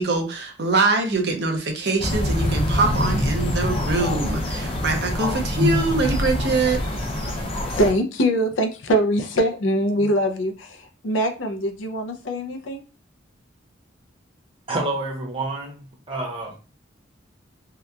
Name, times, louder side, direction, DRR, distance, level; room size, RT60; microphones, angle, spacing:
voice 1, 0.0-6.8, right 3 dB, 55° right, 3 dB, 0.6 m, -23 dB
sound 1, 2.0-7.9, left 1 dB, 30° left, 0.5 m, -24 dB
voice 2, 7.7-12.8, equal, 80° left, 6 dB, 0.5 m, -23 dB
voice 3, 14.7-15.8 16.1-16.5, right 2 dB, 30° right, -1 dB, 0.8 m, -28 dB
2.8 x 2.2 x 2.3 m, 0.32 s
head